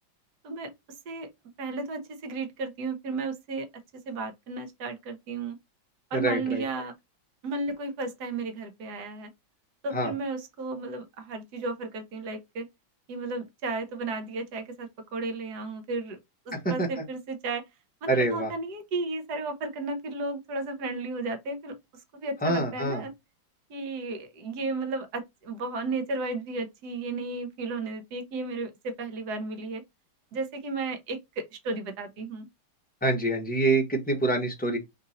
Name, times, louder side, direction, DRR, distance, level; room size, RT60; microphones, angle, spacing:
voice 1, 1.6-3.7 4.1-5.6 6.1-6.9 7.4-9.3 9.8-12.7 13.1-16.2 16.5-17.6 18.0-21.8 22.1-23.1 23.7-29.8 30.3-32.5, right 3 dB, 60° right, 1.4 m, -34 dB
voice 2, 6.1-6.6 9.9-10.1 16.5-16.9 18.1-18.5 22.4-23.0 33.0-34.8, right 2 dB, 5° left, 0.8 m, -26 dB
4.0 x 2.6 x 4.0 m
omnidirectional pair, 2.1 m